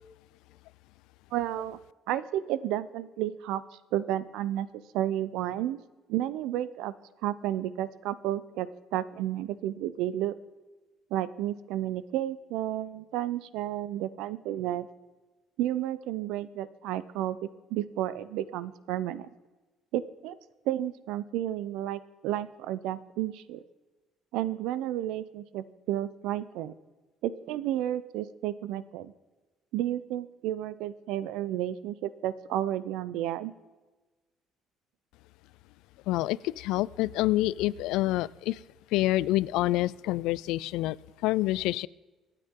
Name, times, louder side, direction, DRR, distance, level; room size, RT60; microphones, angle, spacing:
voice 1, 1.3-1.8 2.1-3.6 3.9-4.7 4.9-5.8 6.1-6.9 7.2-10.3 11.1-14.9 15.6-17.4 17.7-19.3 19.9-20.4 20.7-23.6 24.3-26.7 27.2-29.1 29.7-33.5, right 12 dB, 85° right, 16 dB, 0.6 m, -32 dB
voice 2, 36.1-38.6 38.9-41.0 41.2-41.9, left 17 dB, 85° left, 21 dB, 0.3 m, -27 dB
25.5 x 9.2 x 3.7 m, 1.2 s
cardioid pair, 175°, 0 cm